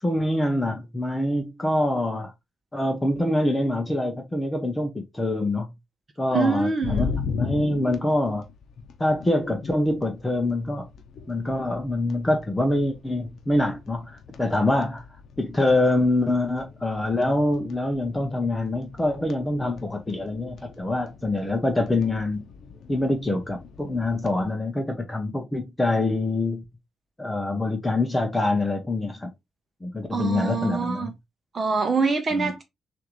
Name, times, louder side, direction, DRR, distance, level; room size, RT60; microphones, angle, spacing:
voice 1, 0.0-2.3 2.7-5.7 6.2-8.4 9.0-10.9 11.3-15.0 15.4-22.4 22.9-26.6 27.2-29.3 29.8-31.1 32.3-32.5, left 1 dB, 10° left, 0.7 m, -25 dB
voice 2, 6.3-7.0 30.1-31.1 31.5-32.6, right 4 dB, 30° right, 0.7 m, -25 dB
sound 1, 6.8-24.4, left 6 dB, 60° left, 0.7 m, -38 dB
6.4 x 2.6 x 3.1 m
wide cardioid pair, 170°, 0 cm